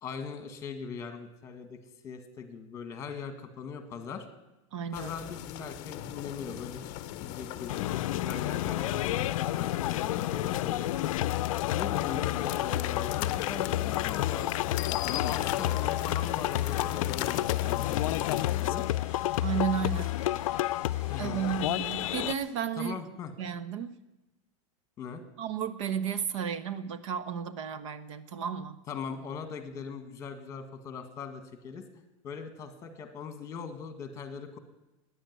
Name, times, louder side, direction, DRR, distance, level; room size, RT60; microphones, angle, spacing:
voice 1, 0.0-1.8 2.0-4.3 4.9-11.1 11.7-18.8 21.1-21.4 22.8-23.3 25.0-25.2 28.9-31.8 32.2-34.6, left 6 dB, 15° left, 8 dB, 1.5 m, -41 dB
voice 2, 4.7-5.1 19.4-20.1 21.2-23.1 23.4-24.0 25.4-28.8, right 8 dB, 65° right, 12 dB, 1.2 m, -33 dB
sound 1, 4.9-18.6, left 13 dB, 35° left, 0.7 m, -40 dB
sound 2, 7.7-22.3, left 15 dB, 80° left, 0.5 m, -30 dB
sound 3, 15.1-22.5, equal, 5° right, 4.5 m, -52 dB
14.0 x 10.0 x 9.3 m, 1.0 s
supercardioid pair, 170°, 17 cm